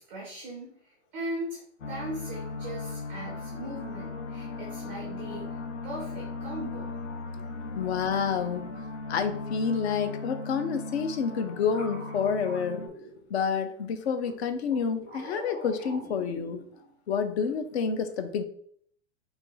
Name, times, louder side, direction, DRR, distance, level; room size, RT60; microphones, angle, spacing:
voice 1, 0.0-6.9, right 1 dB, 5° right, -3 dB, 0.3 m, -39 dB
sound 1, 1.8-12.9, left 3 dB, 90° left, 0.9 m, -37 dB
voice 2, 7.7-8.7 9.1-12.9 13.3-16.6 17.1-18.4, left 6 dB, 65° left, 9 dB, 0.7 m, -29 dB
sound 2, 10.8-13.6 14.2-16.9, equal, 25° left, 1.1 m, -45 dB
4.3 x 3.0 x 3.9 m, 0.63 s
supercardioid pair, 175°, 36 cm